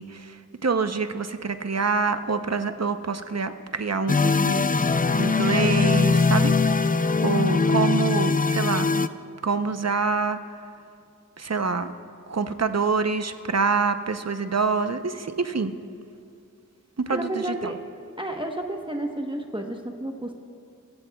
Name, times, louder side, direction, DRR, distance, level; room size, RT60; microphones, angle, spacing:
voice 1, 0.0-6.5 6.9-8.9 9.4-10.4 11.4-11.9 12.3-15.7 17.1-17.7, right 4 dB, 50° right, 9 dB, 0.7 m, -26 dB
sound 1, 4.1-9.1, left 4 dB, 25° left, 0.4 m, -21 dB
voice 2, 17.1-17.8 18.2-20.3, right 1 dB, 15° right, 2 dB, 1.0 m, -31 dB
24.0 x 15.0 x 2.3 m, 2.4 s
wide cardioid pair, 45°, 32 cm